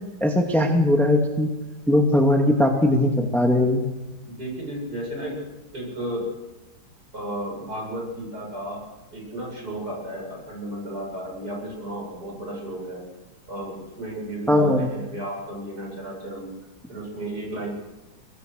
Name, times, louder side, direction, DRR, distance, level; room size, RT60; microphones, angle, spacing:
voice 1, 0.2-1.5 1.9-3.8 14.5-14.9, left 1 dB, ahead, 2 dB, 2.1 m, -19 dB
voice 2, 4.2-5.4 5.7-6.3 7.1-8.8 9.1-13.1 13.5-16.5 16.9-17.7, right 1 dB, 45° right, -1 dB, 8.5 m, -33 dB
24.0 x 22.0 x 6.6 m, 1.1 s
omnidirectional pair, 2.3 m